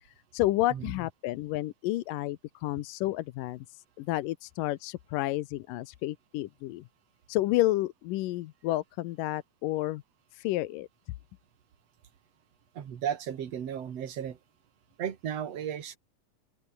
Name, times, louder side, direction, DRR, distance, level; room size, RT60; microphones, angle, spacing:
voice 1, 0.3-3.7 4.0-6.8 7.3-10.0 10.3-10.9, left 16 dB, 80° left, 2.4 m, -30 dB
voice 2, 12.7-14.4 15.0-16.0, right 9 dB, 50° right, 2.8 m, -34 dB
open air
omnidirectional pair, 4.0 m